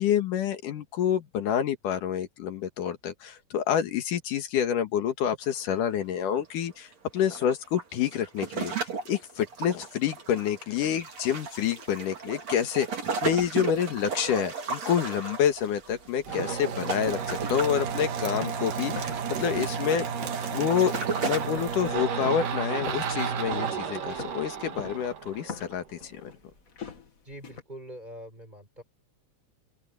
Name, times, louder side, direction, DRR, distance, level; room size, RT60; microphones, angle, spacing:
voice 1, 0.0-6.9 7.1-8.7 9.1-12.9 13.2-20.1 20.5-20.9 21.2-26.3, left 9 dB, 80° left, 3.2 m, -28 dB
sound 1, 5.4-5.6 5.9-6.0 6.9-21.5, right 5 dB, 55° right, 5.0 m, -35 dB
sound 2, 15.5-19.8 20.2-20.5 20.9-27.6, left 5 dB, 35° left, 1.4 m, -43 dB
sound 3, 16.2-25.8, right 6 dB, 80° right, 3.6 m, -32 dB
voice 2, 27.3-28.8, equal, 15° right, 5.2 m, -44 dB
open air
omnidirectional pair, 3.6 m